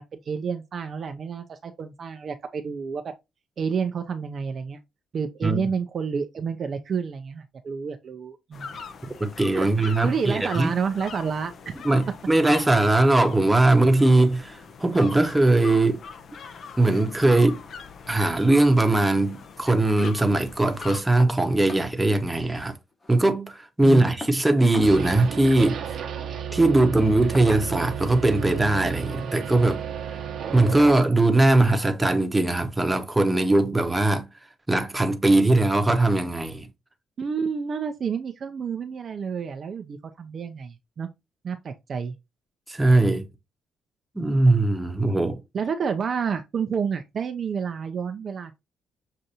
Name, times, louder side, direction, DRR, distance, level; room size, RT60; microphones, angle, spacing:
voice 1, 0.0-3.1 3.6-4.8 5.1-8.8 9.5-11.8 23.8-24.0 37.2-41.1 41.4-42.1 45.5-48.6, right 6 dB, 50° right, 0.5 m, -30 dB
sound 1, 8.5-21.0, left 5 dB, 55° left, 0.7 m, -41 dB
voice 2, 9.2-10.7 11.8-16.0 16.8-17.6 18.1-22.8 23.1-26.0 26.5-29.8 30.5-34.3 34.7-36.7 42.7-43.3 44.1-45.4, right 2 dB, 10° right, 0.9 m, -20 dB
sound 2, 21.2-21.4 21.7-21.9 22.3-22.4 22.6-23.3 24.2-24.9 26.2-26.4 27.3-28.0 29.0-29.4 29.8-30.0 30.8-31.1 32.4-32.5 33.0-33.1, left 2 dB, 30° left, 1.2 m, -40 dB
sound 3, 24.8-31.0, right 8 dB, 65° right, 0.9 m, -33 dB
6.5 x 2.6 x 2.8 m
cardioid pair, 90°, 0 cm